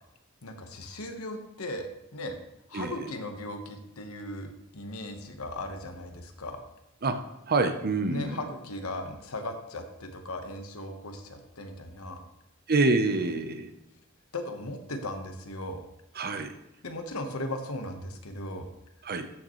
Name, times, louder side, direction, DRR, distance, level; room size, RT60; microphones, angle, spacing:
voice 1, 0.4-2.4 2.7-6.6 8.1-12.2 14.3-15.8 16.8-18.7, left 1 dB, 75° left, 5 dB, 1.3 m, -37 dB
voice 2, 7.5-8.4 12.7-13.7 16.2-16.5 19.1-19.3, right 3 dB, 45° right, 8 dB, 0.8 m, -26 dB
13.5 x 6.6 x 3.2 m, 0.87 s
head